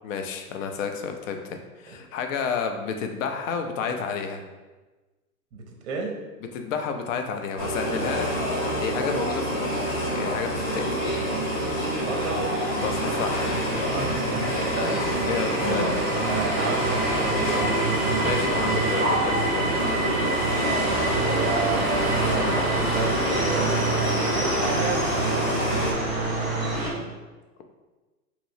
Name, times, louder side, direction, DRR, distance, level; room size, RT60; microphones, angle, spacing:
voice 1, 0.0-4.4 6.5-8.3 8.8-11.0 12.7-13.9 14.8-15.9 18.2-19.7, left 6 dB, 55° left, 5 dB, 0.5 m, -31 dB
voice 2, 5.5-6.2 11.9-12.5 13.8-15.1 15.4-16.0 16.3-18.2 20.8-23.1 23.4-23.8 24.3-25.2 26.9-27.1, right 3 dB, 45° right, 2 dB, 0.5 m, -32 dB
sound 1, 7.6-25.9, equal, 35° left, 0.8 m, -27 dB
sound 2, 10.8-26.9, right 2 dB, ahead, 0.6 m, -28 dB
3.0 x 2.9 x 2.6 m, 1.2 s
hypercardioid pair, 130°, 46 cm